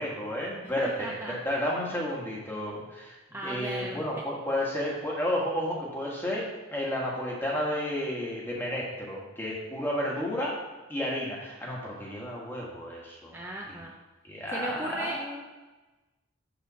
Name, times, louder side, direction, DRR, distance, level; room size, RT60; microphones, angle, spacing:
voice 1, 0.0-10.6 10.9-13.4 13.7-13.9 14.2-15.4, left 1 dB, 10° left, -4 dB, 1.3 m, -32 dB
voice 2, 0.8-1.3 3.3-4.0 13.3-13.9 14.5-15.2, right 1 dB, 10° right, -2 dB, 0.5 m, -36 dB
6.8 x 3.4 x 6.1 m, 1.1 s
head